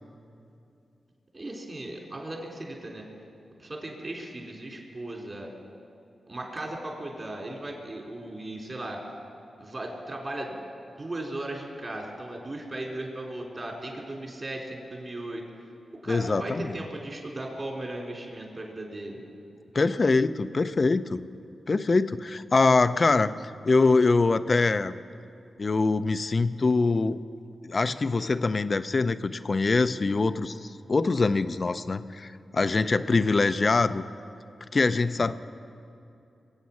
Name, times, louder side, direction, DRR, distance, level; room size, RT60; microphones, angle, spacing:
voice 1, 1.3-3.1 3.6-5.5 6.3-9.0 9.6-10.6 10.9-15.4 16.0-19.2, right 1 dB, 45° right, -1 dB, 4.0 m, -37 dB
voice 2, 16.1-16.8 19.7-21.2 21.7-23.3 23.6-25.0 25.6-27.2 27.6-34.0 34.7-35.3, left 3 dB, 50° left, 12 dB, 0.6 m, -24 dB
22.5 x 8.4 x 7.3 m, 2.6 s
cardioid pair, 45°, 0 cm